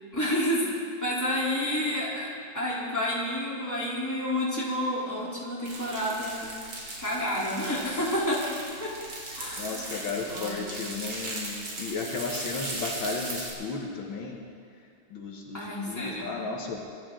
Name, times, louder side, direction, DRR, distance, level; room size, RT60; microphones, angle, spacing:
voice 1, 0.1-0.7 1.0-2.3 2.5-6.5 7.0-8.4 8.8-8.9 9.3-10.6 15.5-16.4, left 1 dB, 10° left, -6 dB, 3.2 m, -30 dB
sound 1, 5.7-13.5, right 2 dB, 70° right, 3.5 m, -38 dB
voice 2, 9.6-14.5 15.1-16.8, left 4 dB, 75° left, 0 dB, 2.1 m, -34 dB
23.0 x 12.5 x 3.8 m, 2.3 s
omnidirectional pair, 2.2 m